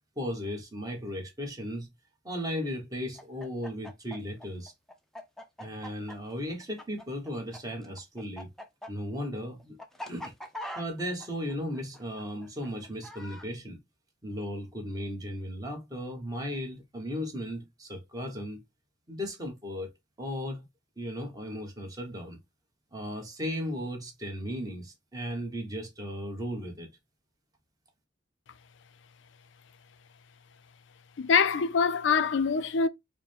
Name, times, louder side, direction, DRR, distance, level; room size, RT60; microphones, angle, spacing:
voice 1, 0.2-1.9 2.2-4.7 5.6-8.5 8.9-9.8 10.1-10.3 10.7-13.8 14.2-18.6 19.1-19.9 20.2-20.6 21.0-22.4 22.9-26.9, equal, 20° right, 1.1 m, -36 dB
Chicken rooster, 3.1-7.6 7.8-13.5, left 1 dB, ahead, 0.5 m, -42 dB
voice 2, 31.2-32.9, left 5 dB, 70° left, 0.4 m, -24 dB
4.8 x 2.1 x 3.2 m
head